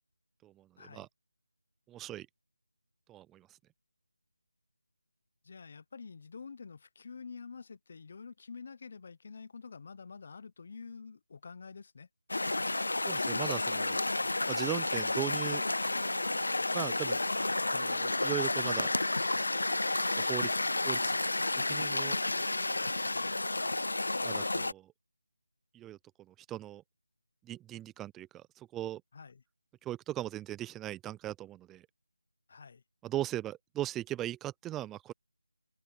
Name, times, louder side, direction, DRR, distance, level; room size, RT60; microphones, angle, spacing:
voice 1, 0.4-1.1 1.9-2.3 3.1-3.6 13.0-14.0 14.5-15.6 16.7-17.2 17.7-18.9 20.2-20.6 20.8-21.1 21.5-22.2 23.0-23.1 24.2-24.9 25.7-26.0 26.3-26.8 27.5-29.0 29.8-31.9 33.0-35.1, right 13 dB, 10° right, 0.4 m, -39 dB
voice 2, 5.4-12.1 23.0-23.3 29.1-29.4 32.5-32.8, left 5 dB, 40° left, 0.9 m, -48 dB
sound 1, 12.3-24.7, left 2 dB, 75° left, 0.7 m, -31 dB
figure-of-eight pair, 165°, 0 cm